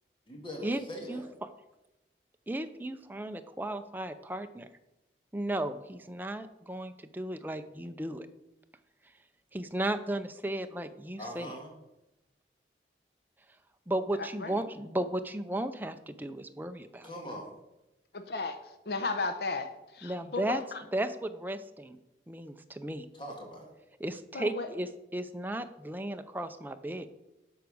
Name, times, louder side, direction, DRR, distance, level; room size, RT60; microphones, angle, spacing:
voice 1, 0.3-1.3 11.2-11.7 17.0-17.5 23.1-23.7, equal, 25° left, 0 dB, 1.9 m, -41 dB
voice 2, 2.5-4.7 5.3-8.3 9.5-11.5 13.9-17.1 20.0-20.6 20.9-22.0 22.3-23.1 24.0-27.1, right 1 dB, 10° right, 8 dB, 0.5 m, -35 dB
voice 3, 14.2-14.6 18.1-20.8 24.3-24.7, left 3 dB, 65° left, 7 dB, 0.8 m, -35 dB
12.0 x 4.7 x 6.3 m, 0.96 s
head